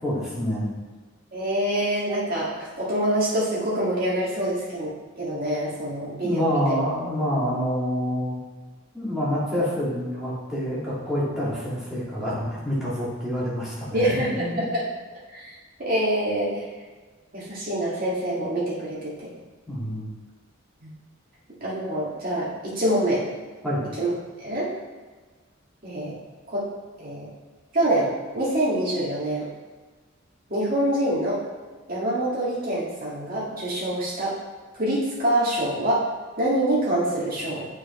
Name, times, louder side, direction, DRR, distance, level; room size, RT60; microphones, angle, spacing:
voice 1, 0.0-0.7 6.2-8.4 8.9-14.6 19.7-20.1 23.6-23.9, equal, 5° right, -9 dB, 2.0 m, -27 dB
voice 2, 1.3-6.7 13.9-14.8 15.3-15.5 15.8-16.6 17.3-19.3 20.8-20.9 21.6-23.2 24.0-24.1 24.4-24.7 25.8-26.2 26.5-26.6 27.0-27.3 27.7-29.5 30.5-31.4 31.9-34.4 34.8-36.0 36.4-37.7, right 1 dB, 45° right, -6 dB, 2.1 m, -25 dB
8.0 x 4.9 x 3.2 m, 1.4 s
head